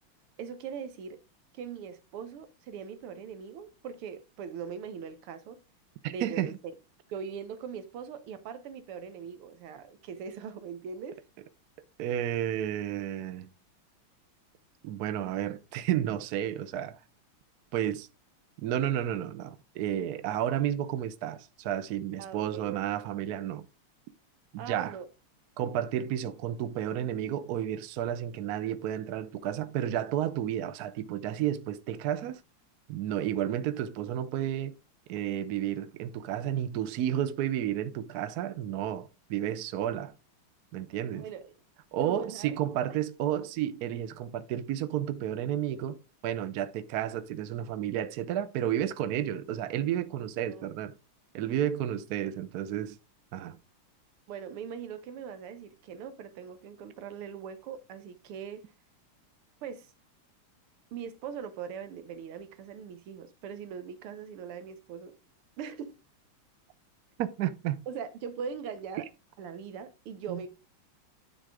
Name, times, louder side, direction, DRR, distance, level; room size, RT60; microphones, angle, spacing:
voice 1, 0.4-1.2 1.5-5.6 6.1-6.7 7.1-11.2 22.2-22.8 24.6-25.1 41.1-41.5 42.0-42.6 42.9-43.0 50.5-50.7 54.3-58.7 59.6-59.9 60.9-65.2 65.6-66.0 67.9-69.1 69.4-70.5, right 7 dB, 90° right, 1.8 m, -41 dB
voice 2, 6.0-6.6 12.0-13.5 14.8-17.0 17.7-18.1 18.6-23.7 24.5-25.0 25.6-32.4 32.9-34.7 35.1-40.1 40.7-41.3 41.9-50.9 51.3-53.0 53.3-53.6 67.2-67.8 70.3-70.4, right 11 dB, 65° right, 0.9 m, -32 dB
9.9 x 3.8 x 4.8 m
omnidirectional pair, 2.4 m